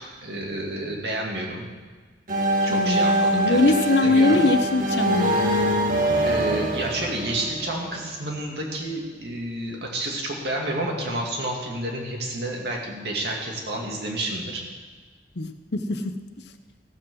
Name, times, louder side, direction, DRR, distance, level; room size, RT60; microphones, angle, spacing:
voice 1, 0.0-1.7 2.6-3.6 4.0-4.4 6.2-14.6, right 1 dB, 65° right, -1 dB, 2.4 m, -30 dB
sound 1, 2.3-8.0, right 1 dB, 50° right, 1.6 m, -23 dB
voice 2, 2.7-5.4 15.4-16.1, left 2 dB, 70° left, 8 dB, 0.9 m, -22 dB
15.0 x 7.7 x 6.3 m, 1.4 s
head